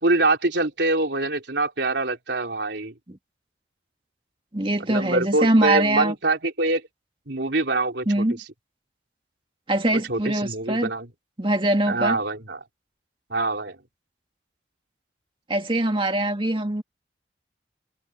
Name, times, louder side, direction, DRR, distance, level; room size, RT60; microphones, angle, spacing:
voice 1, 0.0-2.9 4.9-6.8 7.3-8.2 9.9-11.1 11.9-12.6 13.3-13.8, right 2 dB, 70° right, 3.2 m, -24 dB
voice 2, 4.5-6.1 8.1-8.4 9.7-10.9 11.4-12.2 15.5-16.8, right 1 dB, 25° right, 2.1 m, -23 dB
head